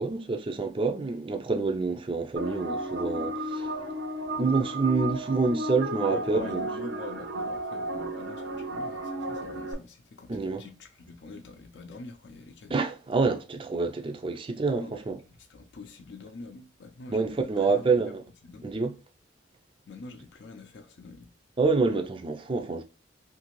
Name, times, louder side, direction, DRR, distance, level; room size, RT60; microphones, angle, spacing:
voice 1, 0.0-3.7 4.4-6.7 10.3-10.6 12.7-15.2 17.1-18.2 18.6-19.0 21.6-22.8, right 4 dB, 25° right, 0.4 m, -27 dB
sound 1, 2.4-9.7, right 1 dB, 80° right, 0.8 m, -33 dB
voice 2, 6.0-12.8 14.7-15.0 15.5-17.9 18.4-18.8 19.9-21.3, left 3 dB, 65° left, 0.5 m, -44 dB
2.8 x 2.6 x 3.0 m
head